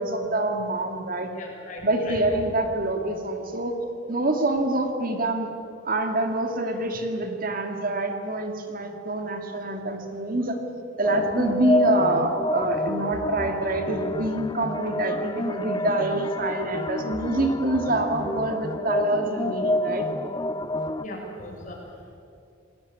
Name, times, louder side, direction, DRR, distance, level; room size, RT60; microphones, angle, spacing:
voice 1, 0.0-1.3 1.8-3.8 4.1-5.5 5.8-10.6 11.0-20.1, right 2 dB, 45° right, 5 dB, 2.3 m, -26 dB
voice 2, 1.3-2.2 21.0-21.8, left 1 dB, 40° left, -1 dB, 7.3 m, -38 dB
sound 1, 11.0-21.0, left 1 dB, 20° left, 0.7 m, -28 dB
28.0 x 19.0 x 9.7 m, 2.5 s
head